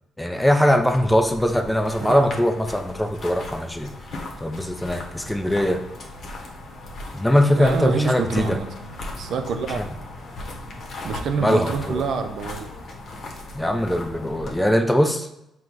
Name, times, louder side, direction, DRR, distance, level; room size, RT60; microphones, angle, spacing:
voice 1, 0.2-3.9 4.4-5.8 7.1-8.6 9.8-9.9 11.4-12.1 13.5-15.3, equal, 5° left, 6 dB, 0.4 m, -21 dB
sound 1, 0.8-14.6, left 2 dB, 60° left, 0.8 m, -37 dB
voice 2, 7.5-8.7 9.2-9.8 11.0-12.7, right 5 dB, 70° right, 6 dB, 0.4 m, -26 dB
4.5 x 2.2 x 3.9 m, 0.87 s
cardioid pair, 90°, 0 cm